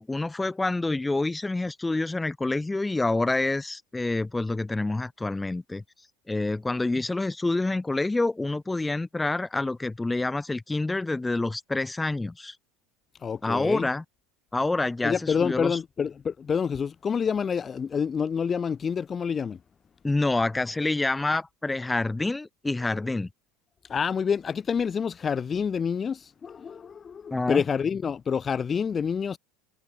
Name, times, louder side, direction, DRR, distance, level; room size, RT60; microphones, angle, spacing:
voice 1, 0.0-5.8 6.3-12.5 13.4-14.0 14.5-15.8 20.0-23.3 27.3-27.6, left 2 dB, 10° left, 4.7 m, -27 dB
voice 2, 13.2-13.9 15.0-19.6 23.9-29.4, left 6 dB, 30° left, 1.8 m, -27 dB
hypercardioid pair, 90°, 0 cm